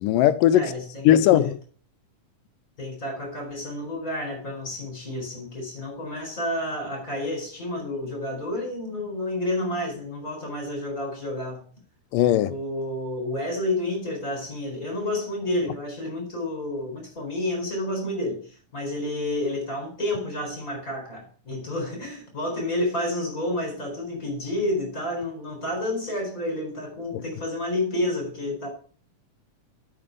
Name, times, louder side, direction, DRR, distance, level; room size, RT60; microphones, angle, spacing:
voice 1, 0.0-0.7 1.1-1.6 12.1-12.5 27.1-27.2, left 11 dB, 85° left, 2.3 m, -18 dB
voice 2, 0.5-1.5 2.8-11.6 12.5-28.7, left 1 dB, 25° left, 4.5 m, -30 dB
8.8 x 6.6 x 6.7 m
omnidirectional pair, 3.8 m